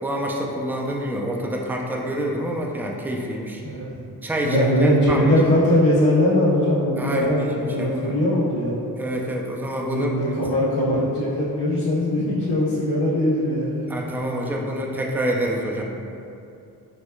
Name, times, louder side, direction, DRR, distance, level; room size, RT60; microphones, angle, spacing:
voice 1, 0.0-3.6 4.2-5.3 7.0-8.2 9.0-10.1 13.9-15.8, right 1 dB, 5° right, -1 dB, 0.3 m, -27 dB
voice 2, 3.6-4.0 4.4-8.7 9.9-14.1, left 1 dB, 85° left, -12 dB, 0.9 m, -21 dB
6.1 x 2.2 x 2.2 m, 2.6 s
cardioid pair, 75°, 38 cm